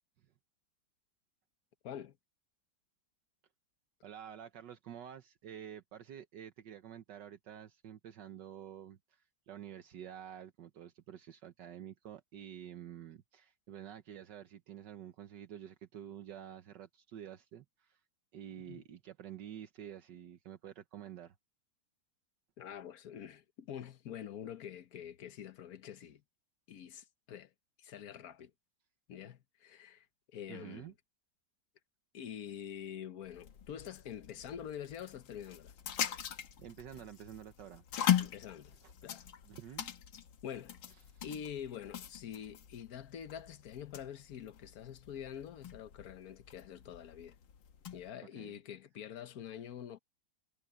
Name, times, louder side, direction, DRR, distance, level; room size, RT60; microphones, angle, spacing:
voice 1, 1.8-2.2 18.7-18.8 22.6-26.2 26.7-27.5 27.8-28.5 29.1-30.1 30.3-30.9 32.1-35.7 38.2-38.8 39.0-39.3 40.4-40.8 41.2-47.3 47.9-50.0, left 9 dB, 60° left, 1.4 m, -46 dB
voice 2, 4.0-18.0 18.3-21.3 30.5-30.9 36.3-37.8 38.8-38.9 39.4-39.9 41.1-41.3 48.3-48.5, right 10 dB, 75° right, 1.6 m, -49 dB
sound 1, 33.2-48.1, left 10 dB, 80° left, 1.9 m, -40 dB
omnidirectional pair, 2.0 m